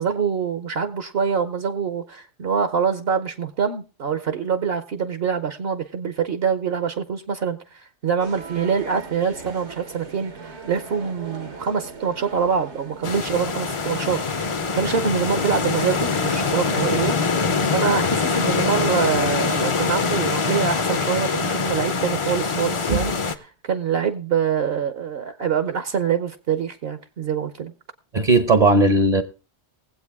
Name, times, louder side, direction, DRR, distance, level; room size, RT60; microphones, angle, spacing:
voice 1, 0.0-17.4 17.7-23.4 23.6-27.7, right 7 dB, 65° right, 1.0 m, -25 dB
sound 1, 8.2-19.3, right 4 dB, 85° right, 1.6 m, -40 dB
sound 2, 13.0-23.4, left 5 dB, 35° left, 0.5 m, -24 dB
voice 2, 28.1-29.2, right 2 dB, 45° right, 0.7 m, -17 dB
19.5 x 8.0 x 3.5 m
omnidirectional pair, 1.1 m